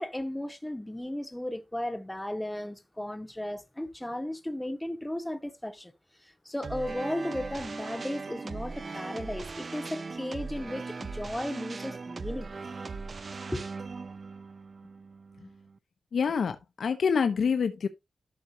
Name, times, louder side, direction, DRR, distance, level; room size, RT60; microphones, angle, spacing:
voice 1, 0.0-5.9 6.2-12.5 13.5-13.6, left 1 dB, 10° left, 0.8 m, -35 dB
sound 1, 6.6-15.8, right 4 dB, 40° right, 0.5 m, -39 dB
voice 2, 16.1-17.9, left 6 dB, 85° left, 0.9 m, -26 dB
12.5 x 5.9 x 2.9 m
wide cardioid pair, 175°, 0 cm